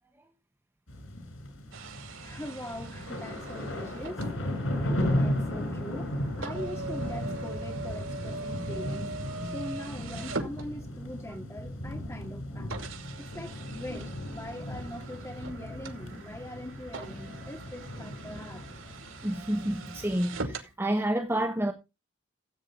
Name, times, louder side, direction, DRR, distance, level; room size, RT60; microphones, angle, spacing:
sound 1, 0.9-20.4, left 1 dB, 90° left, 5.0 m, -36 dB
sound 2, 1.7-11.2 11.9-12.0 12.7-20.7, right 3 dB, 90° right, 2.5 m, -42 dB
voice 1, 2.2-4.3 4.7-9.2 9.5-12.9 13.3-18.6, equal, 15° left, 2.2 m, -42 dB
voice 2, 19.2-21.7, right 1 dB, 10° right, 1.1 m, -29 dB
15.0 x 8.7 x 3.8 m
head